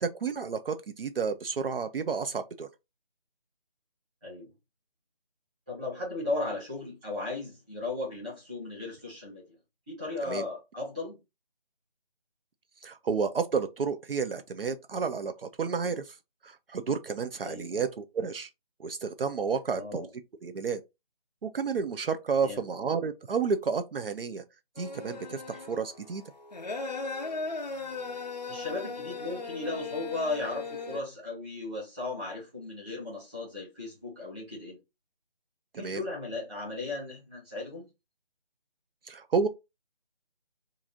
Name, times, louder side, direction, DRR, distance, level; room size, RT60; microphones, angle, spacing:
voice 1, 0.0-2.7 10.3-10.5 12.8-16.2 16.4-18.5 18.8-20.1 20.4-20.8 21.4-24.4 24.8-26.2 35.7-36.0 39.0-39.5, right 5 dB, 70° right, 0.5 m, -31 dB
voice 2, 4.2-4.5 5.7-9.4 9.9-11.2 17.4-17.7 19.7-20.1 22.3-22.6 28.5-34.8 35.7-37.9, left 2 dB, 5° right, 1.1 m, -36 dB
sound 1, 24.8-31.0, left 4 dB, 45° left, 0.4 m, -37 dB
2.9 x 2.5 x 3.7 m
figure-of-eight pair, 165°, 30 cm